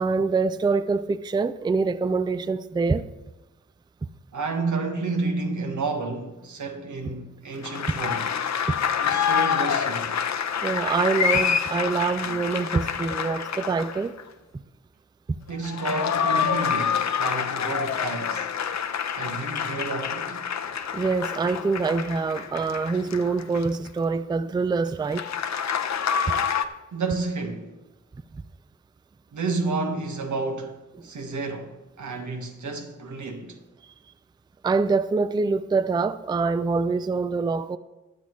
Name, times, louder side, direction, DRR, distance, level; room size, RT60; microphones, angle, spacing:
voice 1, 0.0-3.0 8.7-8.8 10.6-14.1 20.9-25.2 34.6-37.8, right 4 dB, 15° right, 0.3 m, -25 dB
voice 2, 4.3-8.3 9.0-10.3 15.5-18.5 19.1-20.4 26.9-27.7 29.3-33.6, right 3 dB, 85° right, 1.4 m, -31 dB
sound 1, 7.6-14.2 15.5-23.9 25.1-26.7, left 7 dB, 70° left, 0.7 m, -27 dB
20.5 x 7.7 x 3.1 m
wide cardioid pair, 95°, 29 cm